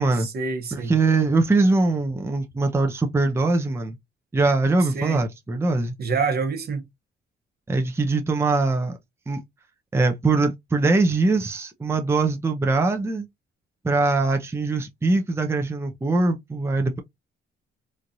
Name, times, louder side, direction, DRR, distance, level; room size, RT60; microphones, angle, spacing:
voice 1, 0.2-0.9 4.9-5.2 6.0-6.8, right 4 dB, 50° right, 1.0 m, -26 dB
voice 2, 0.7-4.0 4.3-5.9 7.7-9.0 9.3-9.4 9.9-13.3 13.8-17.0, right 3 dB, 15° right, 0.6 m, -22 dB
3.1 x 2.4 x 2.6 m
cardioid pair, 90°, 20 cm